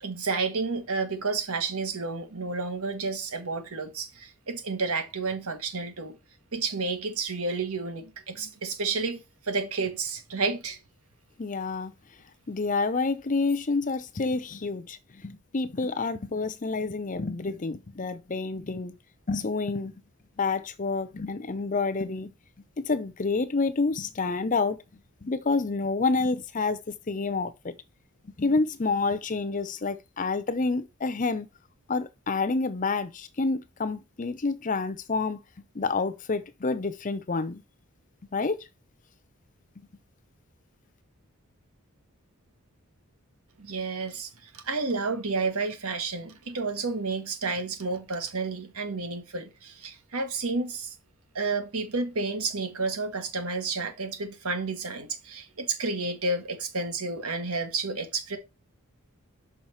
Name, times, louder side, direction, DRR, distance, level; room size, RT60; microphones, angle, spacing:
voice 1, 0.0-6.2 6.5-10.8 43.6-50.9 51.3-58.4, right 3 dB, 75° right, 1.5 m, -31 dB
voice 2, 11.4-11.9 12.5-15.0 15.2-18.9 19.3-19.9 20.4-22.3 22.9-24.8 25.2-26.8 27.1-27.7 28.4-31.5 31.9-35.4 35.8-37.6 38.3-38.6, left 3 dB, 35° left, 0.6 m, -28 dB
5.7 x 5.6 x 4.5 m
head